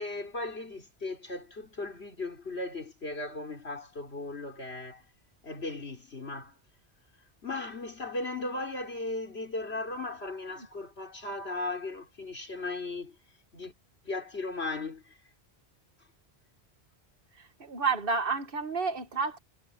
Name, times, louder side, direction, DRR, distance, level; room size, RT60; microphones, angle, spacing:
voice 1, 0.0-5.1 5.4-6.6 7.4-13.7 14.0-15.2, left 2 dB, 75° left, 4.0 m, -37 dB
voice 2, 17.4-19.4, right 4 dB, 55° right, 1.6 m, -30 dB
omnidirectional pair, 1.1 m